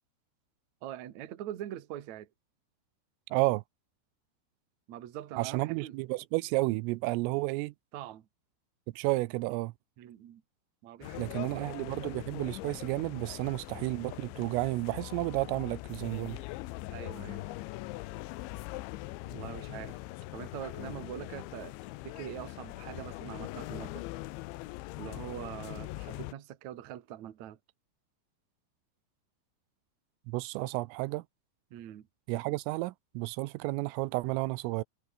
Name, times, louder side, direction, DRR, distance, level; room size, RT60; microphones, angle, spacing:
voice 1, 0.8-2.3 4.9-6.0 7.9-8.3 10.0-10.4 10.8-11.7 16.9-17.5 19.2-20.0 20.3-21.7 22.0-24.0 25.0-27.6 31.7-32.1, right 12 dB, 60° right, 2.0 m, -43 dB
voice 2, 3.3-3.6 5.4-7.7 9.0-9.7 11.2-16.4 30.3-31.2 32.3-34.8, right 22 dB, 85° right, 3.3 m, -31 dB
sound 1, 11.0-26.3, left 19 dB, 80° left, 3.0 m, -42 dB
omnidirectional pair, 5.7 m